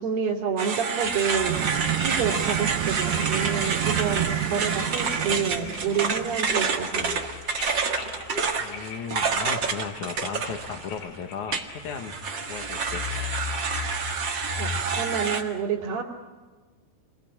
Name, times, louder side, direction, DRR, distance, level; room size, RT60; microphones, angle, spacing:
voice 1, 0.0-7.1 14.6-16.0, right 6 dB, 65° right, -2 dB, 4.2 m, -29 dB
sound 1, 0.6-11.0 11.5-15.4, right 5 dB, 45° right, 1.6 m, -28 dB
sound 2, 1.0-14.8, left 6 dB, 85° left, 5.0 m, -40 dB
sound 3, 1.5-6.5, right 12 dB, 90° right, 3.2 m, -30 dB
voice 2, 8.6-12.2 12.5-13.0, left 6 dB, 60° left, 7 dB, 2.3 m, -36 dB
28.5 x 22.0 x 9.0 m, 1.4 s
omnidirectional pair, 4.6 m